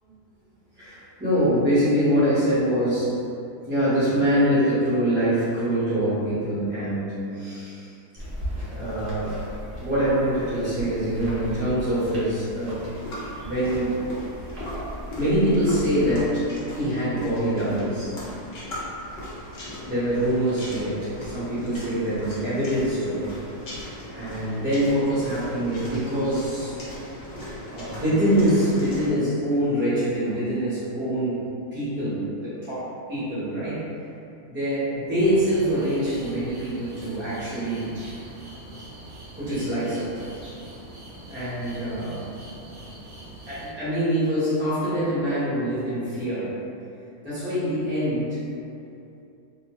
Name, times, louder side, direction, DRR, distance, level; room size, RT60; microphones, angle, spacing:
voice 1, 0.7-3.2 3.6-7.9 8.7-9.4 9.8-12.9 13.4-13.9 15.1-18.2 19.9-23.3 24.1-26.8 27.7-31.4 31.7-33.9 34.5-37.9 39.4-40.2 41.3-42.4 43.5-46.5 47.2-48.4, equal, 10° right, -13 dB, 0.7 m, -24 dB
sound 1, 8.2-16.3, equal, 45° right, 0.7 m, -37 dB
sound 2, 12.9-29.1, equal, 70° left, 0.4 m, -38 dB
sound 3, 35.2-43.7, right 1 dB, 75° right, 0.4 m, -43 dB
2.7 x 2.1 x 2.9 m, 2.6 s
omnidirectional pair, 1.7 m